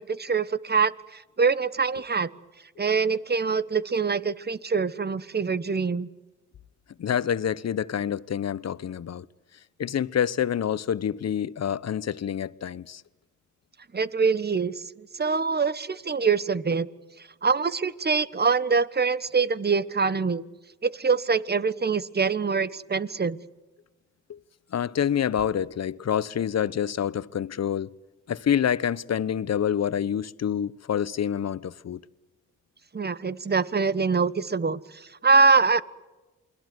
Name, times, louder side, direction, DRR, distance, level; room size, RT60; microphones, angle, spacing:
voice 1, 0.0-2.3 2.8-6.1 13.9-16.9 17.4-20.4 20.8-23.4 32.9-35.8, right 5 dB, 35° right, 1.3 m, -24 dB
voice 2, 7.0-9.2 9.8-13.0 24.3-24.4 24.7-27.9 28.3-32.0, left 9 dB, 55° left, 1.0 m, -27 dB
28.5 x 21.5 x 8.1 m
supercardioid pair, 55°, 30 cm